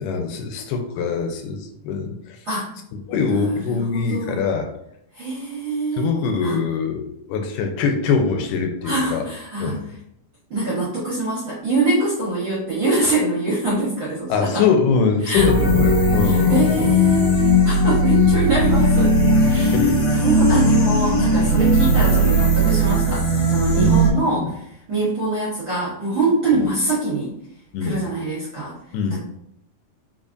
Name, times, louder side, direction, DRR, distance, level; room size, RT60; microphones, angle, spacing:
voice 1, 0.0-2.4 2.9-4.7 6.0-9.2 9.6-9.8 14.3-17.0 19.4-20.0 23.8-24.5 26.5-26.6 27.7-28.0 28.9-29.2, left 5 dB, 90° left, 5 dB, 2.3 m, -23 dB
voice 2, 3.1-4.4 5.1-6.1 6.4-6.6 8.8-9.8 10.5-14.6 15.2-15.5 16.2-19.1 19.5-19.8 20.1-24.6 24.9-27.3 27.8-28.7, right 2 dB, 65° right, -7 dB, 1.1 m, -24 dB
sound 1, 15.3-24.1, equal, 55° left, 2.0 m, -17 dB
4.6 x 3.6 x 2.6 m, 0.77 s
omnidirectional pair, 3.7 m